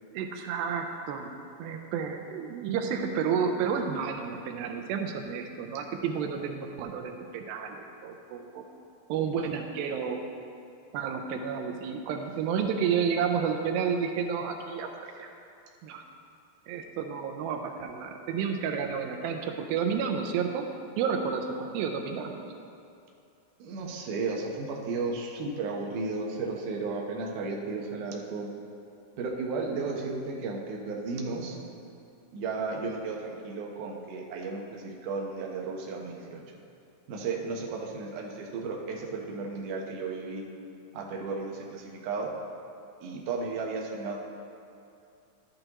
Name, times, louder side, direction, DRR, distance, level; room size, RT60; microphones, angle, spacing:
voice 1, 0.1-1.3 1.6-8.6 9.1-10.2 10.9-15.3 15.8-16.0 16.7-20.7 21.0-22.4, right 6 dB, 90° right, 4 dB, 2.4 m, -31 dB
voice 2, 23.6-28.5 29.2-31.6 32.3-36.4 37.1-40.4 40.9-42.3 43.0-44.2, right 4 dB, 70° right, -1 dB, 2.2 m, -34 dB
12.0 x 7.8 x 2.9 m, 2.6 s
omnidirectional pair, 4.2 m